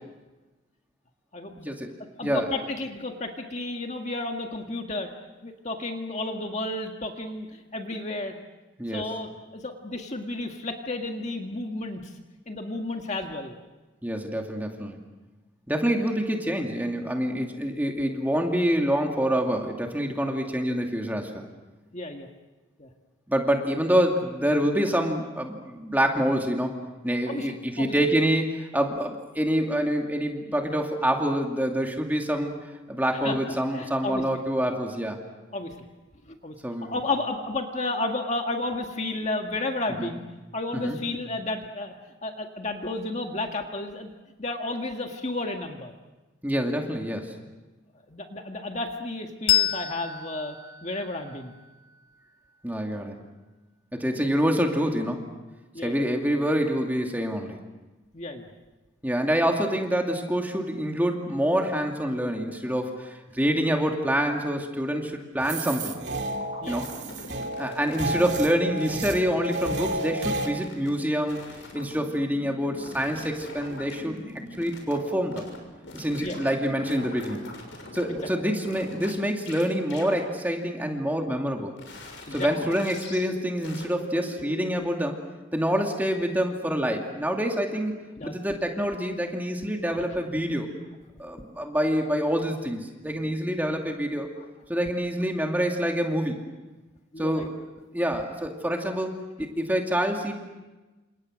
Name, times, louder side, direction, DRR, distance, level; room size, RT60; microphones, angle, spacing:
voice 1, 1.5-1.9 2.2-2.5 8.8-9.0 14.0-15.0 15.7-21.5 23.3-26.7 27.0-32.5 32.9-35.2 36.6-37.0 40.0-40.1 40.7-41.0 46.4-47.3 52.6-53.2 53.9-55.2 55.8-57.6 59.0-66.0 66.7-66.9 67.6-71.4 71.7-74.2 74.6-75.4 75.9-77.5 77.9-81.7 82.3-85.2 85.5-90.7 91.2-94.3 94.7-96.4 97.2-97.6 97.9-100.3, equal, 10° right, 2 dB, 2.5 m, -26 dB
voice 2, 2.2-5.1 5.4-8.4 8.9-12.0 12.5-13.5 18.0-18.1 21.9-22.3 22.8-22.9 27.3-27.9 33.2-33.3 33.7-34.2 35.5-35.7 36.3-36.5 36.8-40.2 40.5-41.9 42.2-44.1 44.4-45.9 48.1-50.6 50.8-51.5 55.7-56.1 58.1-58.4 59.0-59.1 66.6-66.8 67.6-67.8 76.2-76.4 78.1-78.2 82.2-82.5 88.2-88.3 92.0-92.1 97.1-97.5, left 2 dB, 35° left, 3 dB, 1.8 m, -32 dB
Bell, 49.5-52.6, left 11 dB, 50° left, 1.2 m, -29 dB
sound 1, 65.4-70.5, right 2 dB, 55° right, 2.7 m, -32 dB
sound 2, 66.2-68.5 68.8-69.9 70.2-70.9 71.3-75.6 75.8-79.1 79.4-79.6 79.9-80.2 81.8-84.7, left 2 dB, 70° left, 6.6 m, -42 dB
29.5 x 27.5 x 6.5 m, 1.2 s
head